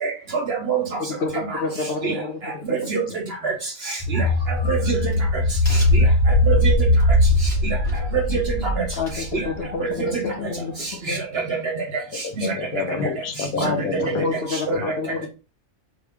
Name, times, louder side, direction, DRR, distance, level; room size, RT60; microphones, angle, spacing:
voice 1, 0.0-0.8 2.0-2.1 2.9-3.0 3.4-3.5 3.9-4.3 4.7-5.1 5.9-6.0 6.5-6.8 8.1-8.8 9.3-9.4 9.8-9.9 11.1-11.2 12.4-12.5 13.6-13.7 14.5-14.6, right 5 dB, 60° right, 3 dB, 0.7 m, -24 dB
voice 2, 1.2-2.8 9.0-11.2 13.6-15.3, left 4 dB, 55° left, 3 dB, 0.7 m, -28 dB
sound 1, 4.0-9.6 10.0-10.1, left 1 dB, 15° left, 0.8 m, -20 dB
Crack, 4.3-9.8, right 1 dB, 35° left, 2.2 m, -28 dB
voice 3, 12.2-14.3 14.7-14.9, left 4 dB, 75° left, 5 dB, 1.1 m, -28 dB
4.4 x 2.0 x 3.4 m, 0.33 s
omnidirectional pair, 1.5 m